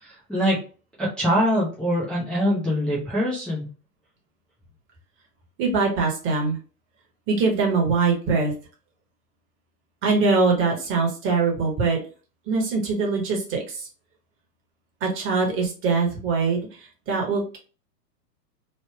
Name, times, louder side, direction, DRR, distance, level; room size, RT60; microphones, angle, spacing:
voice 1, 0.0-0.6 1.0-3.6, equal, ahead, -8 dB, 0.6 m, -23 dB
voice 2, 5.6-6.6 7.3-8.5 10.0-12.0 12.5-13.9 15.0-16.6 17.1-17.6, right 4 dB, 25° right, 0 dB, 1.1 m, -22 dB
3.2 x 2.1 x 3.2 m, 0.37 s
hypercardioid pair, 125°, 49 cm